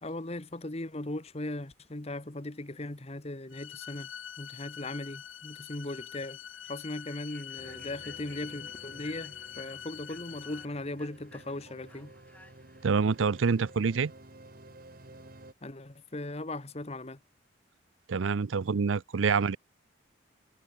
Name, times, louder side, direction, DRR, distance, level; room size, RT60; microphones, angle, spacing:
voice 1, 0.0-4.1 4.4-6.4 6.7-12.1 15.6-17.2, left 2 dB, 30° left, 1.2 m, -38 dB
sound 1, 3.5-10.6, left 10 dB, 80° left, 1.7 m, -45 dB
Human voice / Train, 5.1-5.3 5.7-5.9 6.4-14.0, left 1 dB, 10° left, 7.3 m, -59 dB
sound 2, 7.6-15.5, right 1 dB, 45° right, 2.0 m, -53 dB
voice 2, 12.8-14.1 18.1-19.6, right 5 dB, 75° right, 0.5 m, -26 dB
head